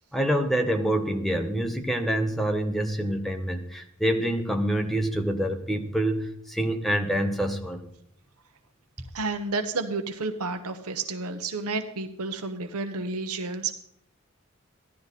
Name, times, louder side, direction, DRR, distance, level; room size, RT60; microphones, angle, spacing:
voice 1, 0.1-7.8, right 1 dB, ahead, 4 dB, 1.2 m, -26 dB
voice 2, 9.1-13.7, right 3 dB, 90° right, 7 dB, 1.1 m, -31 dB
15.0 x 11.5 x 4.2 m, 0.72 s
head